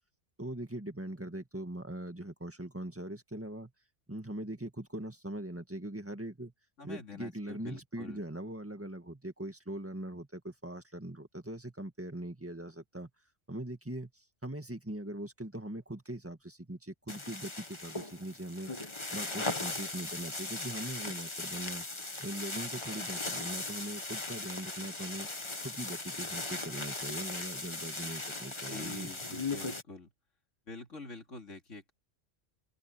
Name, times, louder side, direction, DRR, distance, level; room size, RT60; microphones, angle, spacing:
voice 1, 0.4-3.7 4.1-6.5 6.8-13.1 13.5-18.7 19.1-21.9 22.2-25.3 25.6-29.1, right 1 dB, 10° right, 1.8 m, -41 dB
voice 2, 6.8-8.2 28.7-30.1 30.7-31.9, left 3 dB, 75° left, 3.1 m, -46 dB
sound 1, 17.1-29.8, left 2 dB, 25° left, 1.5 m, -38 dB
omnidirectional pair, 1.3 m